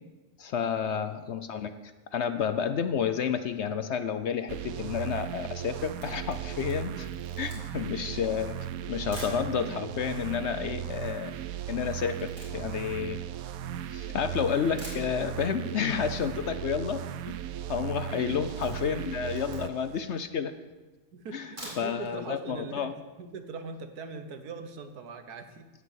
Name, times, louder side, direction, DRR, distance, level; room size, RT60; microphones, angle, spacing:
voice 1, 0.4-1.7 2.1-7.1 7.4-8.6 8.9-11.3 11.7-13.2 13.9-17.4 17.7-20.5 21.3-21.5 21.8-22.9, left 7 dB, 60° left, 10 dB, 0.8 m, -30 dB
sound 1, 4.5-20.0, right 11 dB, 75° right, 1.0 m, -37 dB
Camera, 5.8-9.4 10.1-10.2 10.4-14.1 14.5-14.6 14.8-15.6 15.9-16.0 16.3-16.4 16.6-17.0 17.3-17.6 17.9-19.9 20.4-20.5 21.3-22.1 22.5-22.6 22.9-23.0, equal, 20° right, 4.5 m, -48 dB
voice 2, 18.3-19.0 21.1-22.9 23.2-25.7, right 4 dB, 90° right, 8 dB, 1.6 m, -41 dB
17.0 x 6.0 x 7.3 m, 1.2 s
omnidirectional pair, 1.6 m